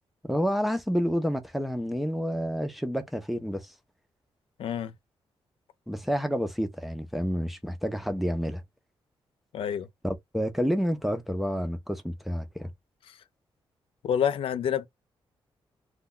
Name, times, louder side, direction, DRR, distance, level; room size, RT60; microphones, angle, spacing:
voice 1, 0.2-3.7 5.9-8.6 10.0-12.7, equal, ahead, 0.5 m, -29 dB
voice 2, 4.6-4.9 9.5-9.9 13.1-13.2 14.0-14.9, left 8 dB, 75° left, 0.4 m, -28 dB
2.2 x 2.2 x 3.7 m
wide cardioid pair, 130°, 9 cm